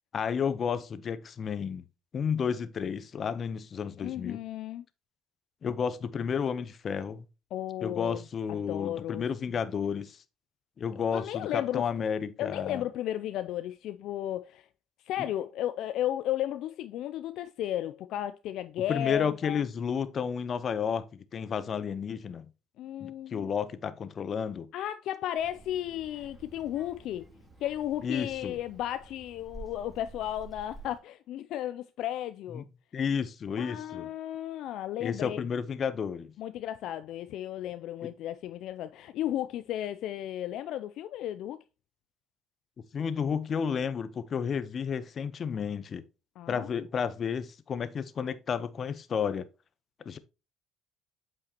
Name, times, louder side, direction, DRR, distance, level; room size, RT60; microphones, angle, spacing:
voice 1, 0.1-1.8 2.1-4.4 5.6-7.2 7.8-10.2 10.8-12.8 18.9-21.1 21.3-22.5 23.0-24.7 28.0-28.6 32.5-32.6 32.9-34.1 35.0-36.3 38.0-38.1 42.9-46.0 46.5-49.5 50.0-50.2, left 7 dB, 45° left, 0.8 m, -31 dB
voice 2, 4.0-4.8 7.5-8.2 8.5-9.6 11.1-11.9 12.4-14.7 15.0-19.6 22.8-23.5 24.7-27.3 27.6-32.6 33.6-35.4 36.4-41.6 46.4-46.7, left 12 dB, 70° left, 0.4 m, -34 dB
Child speech kid speaking, 25.4-31.0, right 3 dB, 15° right, 3.4 m, -50 dB
8.2 x 5.5 x 2.9 m
supercardioid pair, 65°, 0 cm